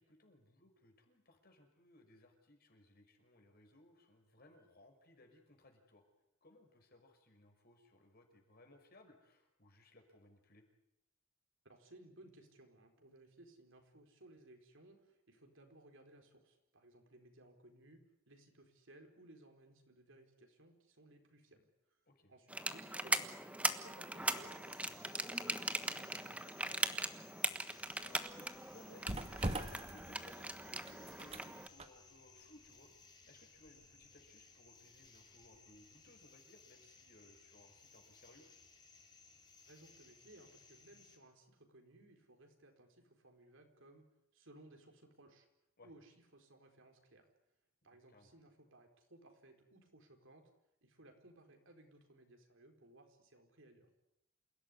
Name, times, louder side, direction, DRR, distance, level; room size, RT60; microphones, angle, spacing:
voice 1, 0.0-6.0 6.4-10.6 22.1-22.3 24.8-24.9 27.7-32.9 33.3-38.5 45.8-45.9 48.1-48.3, left 1 dB, 45° left, 4 dB, 5.6 m, -63 dB
voice 2, 11.6-22.0 22.3-27.0 39.6-44.1 44.3-45.5 45.8-47.3 47.8-50.5 50.8-53.9, right 1 dB, 60° right, 4 dB, 4.4 m, -62 dB
sound 1, 22.5-31.7, right 2 dB, 5° right, 1.2 m, -40 dB
sound 2, 24.2-41.2, left 4 dB, 20° left, 4.2 m, -63 dB
sound 3, 27.8-35.8 36.1-36.3, right 1 dB, 30° right, 1.7 m, -46 dB
28.5 x 17.0 x 10.0 m, 0.86 s
head